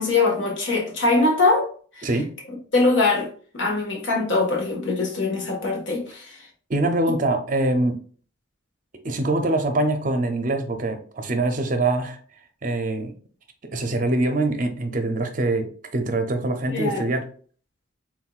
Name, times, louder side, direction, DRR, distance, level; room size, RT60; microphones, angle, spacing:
voice 1, 0.0-1.7 2.0-2.1 2.7-3.3 3.5-6.4 16.7-17.0, left 3 dB, 65° left, 1.4 m, -22 dB
voice 2, 2.0-2.3 6.7-8.0 9.0-12.2 12.6-13.1 13.7-17.2, right 2 dB, 40° right, 0.6 m, -24 dB
4.5 x 3.7 x 2.4 m
head